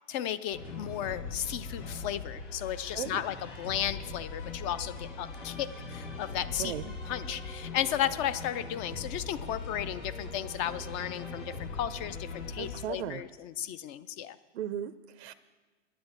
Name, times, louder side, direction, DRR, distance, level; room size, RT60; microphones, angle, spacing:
voice 1, 0.1-6.7 7.1-14.4, left 11 dB, 30° left, 13 dB, 0.4 m, -34 dB
sound 1, 0.5-12.8, left 3 dB, 85° left, 2.2 m, -41 dB
voice 2, 6.6-6.9 12.6-13.2 14.5-15.3, right 10 dB, 65° right, 12 dB, 0.6 m, -36 dB
10.0 x 8.8 x 6.9 m, 1.3 s
hypercardioid pair, 115°, 35 cm